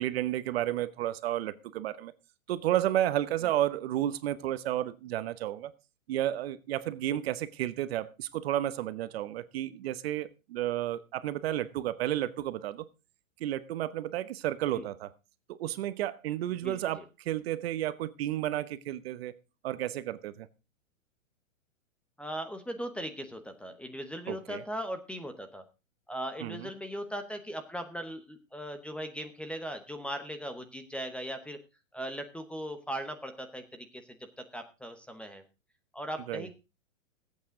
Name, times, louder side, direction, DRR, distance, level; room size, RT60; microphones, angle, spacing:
voice 1, 0.0-2.1 2.5-5.7 6.1-12.8 13.4-15.1 15.6-19.3 19.6-20.5 24.3-24.6 26.4-26.7 36.3-36.5, right 13 dB, 50° right, 15 dB, 1.0 m, -32 dB
voice 2, 16.6-17.0 22.2-25.6 26.1-31.6 31.9-35.4 35.9-36.6, equal, 5° left, 8 dB, 0.9 m, -39 dB
19.0 x 8.5 x 3.8 m, 0.29 s
hypercardioid pair, 145°, 39 cm